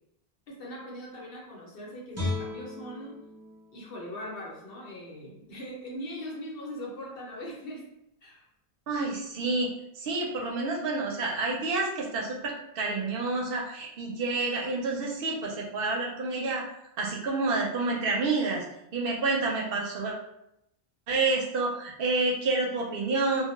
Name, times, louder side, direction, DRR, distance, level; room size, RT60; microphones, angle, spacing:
voice 1, 0.5-3.1 3.7-7.9 8.2-8.4, equal, 70° left, -3 dB, 0.9 m, -40 dB
Guitar, 2.1-5.3 5.7-5.9, left 2 dB, 20° right, 0.6 m, -37 dB
voice 2, 8.9-16.6 17.0-18.6 18.9-20.1 21.1-23.4, right 3 dB, 70° right, -1 dB, 0.7 m, -29 dB
2.2 x 2.1 x 3.0 m, 0.81 s
omnidirectional pair, 1.0 m